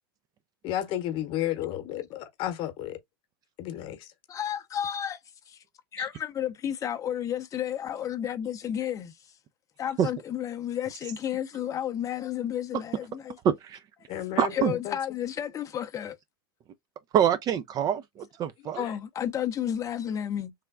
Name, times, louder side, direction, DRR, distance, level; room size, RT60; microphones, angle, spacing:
voice 1, 0.6-3.0 3.6-4.0 14.1-14.5 14.9-15.0, left 12 dB, 45° left, 1.0 m, -32 dB
voice 2, 4.3-5.2 5.5-5.6 5.9-9.1 9.8-13.3 14.5-16.2 18.7-20.5, left 10 dB, 25° left, 0.6 m, -32 dB
voice 3, 13.4-13.8 14.4-14.7 17.1-18.8, right 9 dB, 30° right, 0.4 m, -25 dB
3.4 x 2.1 x 3.5 m
hypercardioid pair, 110°, 12 cm